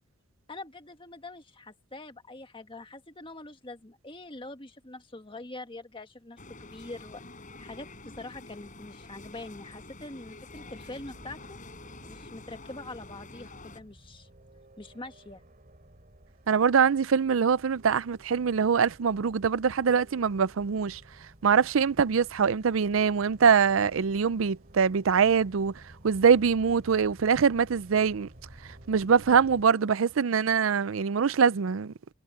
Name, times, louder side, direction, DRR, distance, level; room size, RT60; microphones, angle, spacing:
voice 1, 0.5-7.2 7.6-11.6 12.0-14.3 14.8-15.4, left 2 dB, 25° left, 1.6 m, -44 dB
sound 1, 6.4-13.8, left 2 dB, 40° left, 6.1 m, -47 dB
sound 2, 10.5-29.7, right 1 dB, 45° right, 3.4 m, -53 dB
voice 2, 16.5-21.0 21.4-25.7 26.0-28.3 28.9-32.1, right 6 dB, 85° right, 0.5 m, -23 dB
head